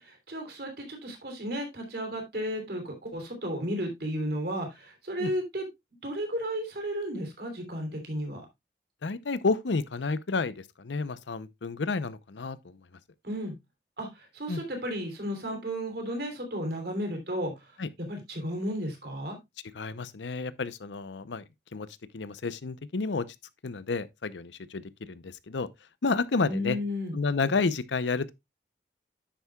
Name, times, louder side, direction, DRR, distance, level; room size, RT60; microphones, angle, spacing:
voice 1, 0.0-5.7 6.0-8.5 13.2-13.5 14.0-17.7 18.0-19.4 26.4-27.2, equal, 60° right, 3.2 m, -33 dB
voice 2, 9.0-12.8 14.5-14.6 17.8-17.9 19.7-21.4 21.7-21.9 22.1-23.3 23.6-25.7 26.0-26.8 27.1-28.3, left 4 dB, 90° left, 0.7 m, -30 dB
10.0 x 8.1 x 2.3 m
head